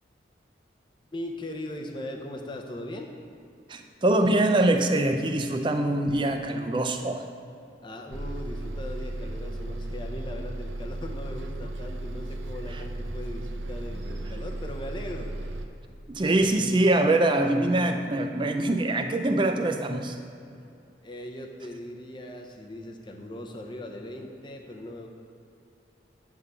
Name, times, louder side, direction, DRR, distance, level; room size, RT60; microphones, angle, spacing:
voice 1, 1.1-3.1 7.8-15.3 21.0-25.1, left 1 dB, 25° left, 2 dB, 0.7 m, -39 dB
voice 2, 3.7-7.2 16.1-20.2, right 1 dB, 25° right, 6 dB, 0.4 m, -24 dB
Bus, 8.1-15.7, right 1 dB, 80° right, 0.6 m, -35 dB
9.4 x 3.6 x 6.8 m, 2.5 s
head